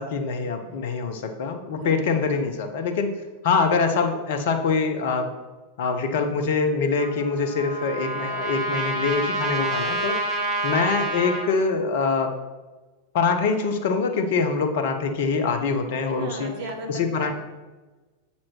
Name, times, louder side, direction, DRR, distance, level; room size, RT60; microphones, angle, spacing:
voice 1, 0.0-3.1 3.4-5.3 5.8-10.2 10.6-12.4 13.1-16.5 16.9-17.3, left 4 dB, 55° left, 7 dB, 0.7 m, -24 dB
Trumpet, 6.9-11.5, right 2 dB, 35° right, 1.8 m, -28 dB
voice 2, 16.1-17.3, right 3 dB, 50° right, 3 dB, 1.1 m, -35 dB
7.4 x 4.4 x 4.4 m, 1.2 s
figure-of-eight pair, 90°, 0 cm